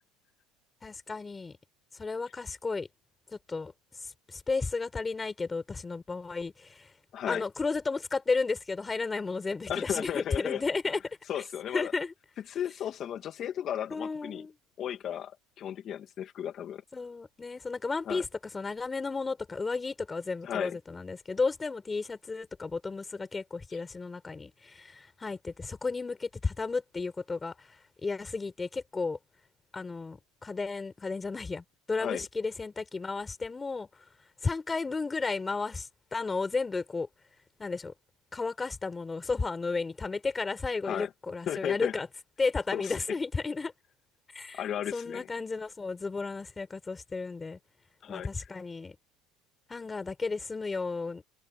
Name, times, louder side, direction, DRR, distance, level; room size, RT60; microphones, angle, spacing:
voice 1, 0.8-1.6 1.9-2.9 3.3-3.7 4.0-6.9 7.3-11.4 11.7-12.1 13.9-14.5 16.9-29.2 29.7-34.0 34.4-37.1 37.6-37.9 38.3-42.1 42.4-43.7 44.3-44.6 44.9-47.6 48.1-48.9 49.7-51.2, left 4 dB, 20° left, 4.7 m, -33 dB
voice 2, 7.1-7.4 9.7-10.6 11.3-11.9 12.5-14.4 14.8-16.8 18.1-18.2 20.4-20.8 32.0-32.2 40.8-41.1 41.5-41.9 42.7-42.9 44.5-45.3 48.0-48.3, left 10 dB, 45° left, 2.6 m, -34 dB
supercardioid pair, 120°, 0 cm